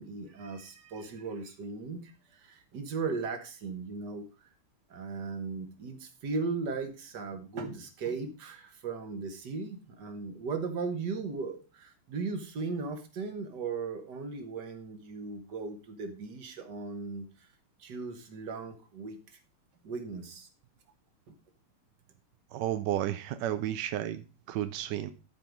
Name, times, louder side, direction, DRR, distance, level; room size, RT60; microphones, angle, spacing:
voice 1, 0.0-4.2 4.9-17.3 17.8-19.2 19.8-20.5 21.3-21.4, right 4 dB, 55° right, 1.8 m, -37 dB
voice 2, 22.5-25.1, right 12 dB, 75° right, 1.0 m, -32 dB
11.5 x 4.7 x 5.1 m
omnidirectional pair, 2.4 m